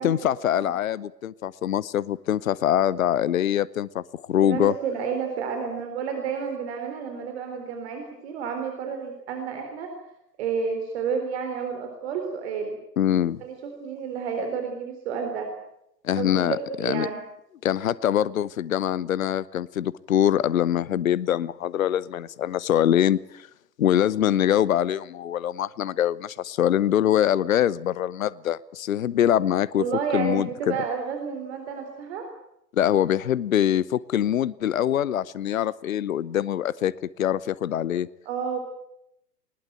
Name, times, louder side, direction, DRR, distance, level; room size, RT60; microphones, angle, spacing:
voice 1, 0.0-4.8 13.0-13.4 16.0-17.1 17.6-23.5 23.8-29.8 30.1-30.8 32.7-38.1, left 10 dB, 55° left, 21 dB, 0.9 m, -24 dB
voice 2, 4.4-9.9 10.4-12.8 13.4-15.5 16.2-17.2 29.8-32.3 38.3-38.6, right 6 dB, 40° right, 5 dB, 4.0 m, -30 dB
20.5 x 20.0 x 9.3 m, 0.80 s
figure-of-eight pair, 120°, 49 cm